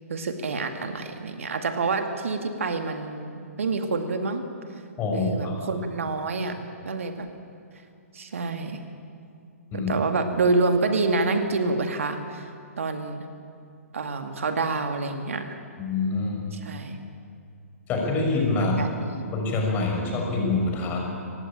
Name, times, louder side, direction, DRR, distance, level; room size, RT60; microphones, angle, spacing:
voice 1, 0.1-4.4 5.1-6.6 6.8-7.3 8.1-8.8 9.7-12.5 12.8-13.2 13.9-15.6 16.5-17.0 18.5-19.3, right 3 dB, 60° right, 6 dB, 2.1 m, -27 dB
voice 2, 5.0-5.6 9.7-9.9 15.8-16.4 17.9-18.8 19.3-21.0, left 3 dB, 20° left, 0 dB, 6.0 m, -25 dB
25.0 x 19.5 x 8.9 m, 2.4 s
figure-of-eight pair, 120°, 8 cm